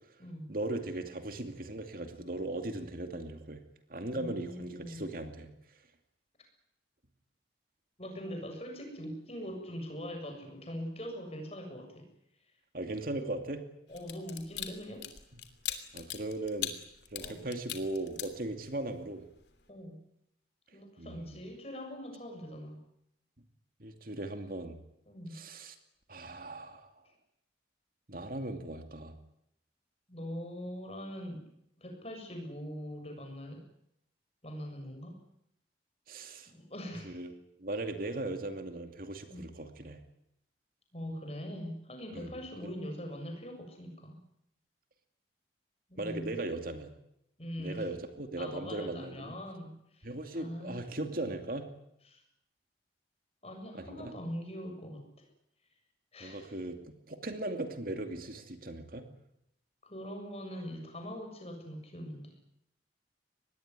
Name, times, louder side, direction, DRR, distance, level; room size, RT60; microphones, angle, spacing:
voice 1, 0.5-3.6 3.9-5.5 12.7-13.6 15.9-16.7 17.1-19.2 21.0-21.4 23.8-24.8 25.3-25.7 26.1-26.9 28.1-29.1 36.1-36.5 37.0-37.3 37.6-40.0 42.1-42.3 42.6-42.7 46.0-46.9 47.6-49.4 50.0-51.7 53.7-54.1 56.2-59.1, right 2 dB, 50° right, 6 dB, 2.5 m, -38 dB
voice 2, 4.1-5.0 8.0-12.1 13.9-15.1 15.7-15.8 17.2-17.4 19.7-20.0 20.7-22.8 25.1-25.3 30.1-31.4 31.8-33.6 34.4-35.2 36.5-37.2 39.3-39.5 40.9-44.2 45.9-46.3 47.4-47.9 48.4-50.8 52.1-52.2 53.4-55.3 56.1-56.5 59.8-62.3, equal, 35° left, 4 dB, 7.2 m, -42 dB
sound 1, 13.9-18.9 19.3-19.6, left 10 dB, 70° left, 3.0 m, -40 dB
24.5 x 20.5 x 9.7 m, 0.79 s
head